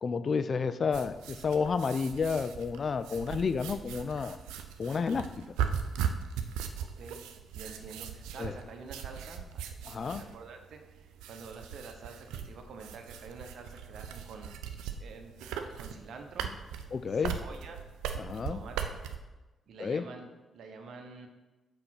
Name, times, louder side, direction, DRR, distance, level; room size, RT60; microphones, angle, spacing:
voice 1, 0.0-4.4 4.8-5.3 8.4-8.5 9.8-10.2 16.9-17.3 18.2-18.6 19.8-20.0, left 5 dB, 50° left, 12 dB, 0.5 m, -30 dB
sound 1, 0.9-19.2, right 8 dB, 80° right, 0.5 m, -39 dB
voice 2, 6.8-7.2 7.5-9.6 9.9-16.5 17.2-17.8 18.5-19.0 19.7-21.3, right 4 dB, 65° right, 4 dB, 0.9 m, -47 dB
5.9 x 5.1 x 5.9 m, 1.1 s
hypercardioid pair, 40°, 0 cm